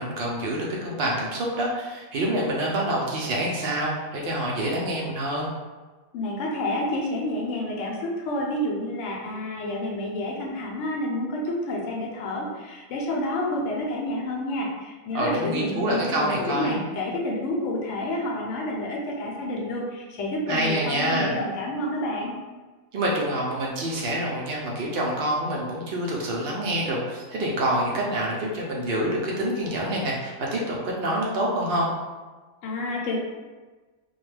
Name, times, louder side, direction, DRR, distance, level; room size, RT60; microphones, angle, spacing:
voice 1, 0.0-5.5 15.1-16.8 20.5-21.3 22.9-31.9, right 1 dB, 80° right, -3 dB, 0.5 m, -27 dB
voice 2, 6.1-22.3 32.6-33.2, left 1 dB, 70° left, -2 dB, 0.9 m, -29 dB
2.3 x 2.2 x 3.1 m, 1.3 s
omnidirectional pair, 1.5 m